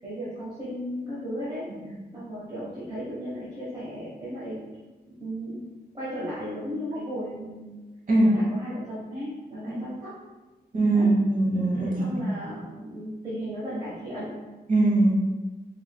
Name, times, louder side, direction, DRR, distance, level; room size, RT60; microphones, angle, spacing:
voice 1, 0.0-4.6 5.1-5.6 5.9-7.8 8.2-10.1 10.9-11.1 11.8-14.4, equal, 25° right, -10 dB, 1.2 m, -35 dB
voice 2, 10.7-12.4 14.7-15.1, right 2 dB, 55° right, -4 dB, 1.0 m, -22 dB
4.7 x 3.2 x 2.2 m, 1.2 s
wide cardioid pair, 165°, 17 cm